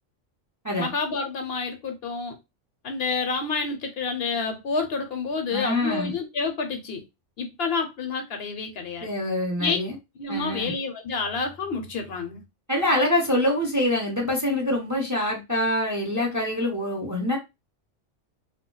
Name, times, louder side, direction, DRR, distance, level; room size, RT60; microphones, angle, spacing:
voice 1, 0.8-2.4 2.8-7.0 7.4-9.1 9.6-9.8 10.2-12.4, left 4 dB, 65° left, 0.8 m, -29 dB
voice 2, 5.5-6.1 9.0-9.9 10.3-10.7 12.7-17.4, left 1 dB, 20° right, 0.5 m, -25 dB
2.2 x 2.2 x 3.7 m
omnidirectional pair, 1.2 m